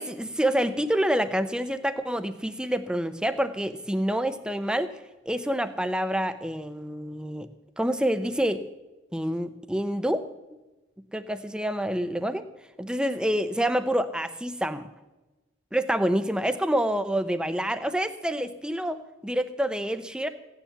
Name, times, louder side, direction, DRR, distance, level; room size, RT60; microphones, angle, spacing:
voice 1, 0.0-4.9 5.3-7.5 7.8-8.6 9.1-10.3 11.1-12.4 12.8-14.9 15.7-20.3, equal, 5° right, 10 dB, 0.7 m, -27 dB
16.0 x 10.0 x 7.1 m, 1.1 s
head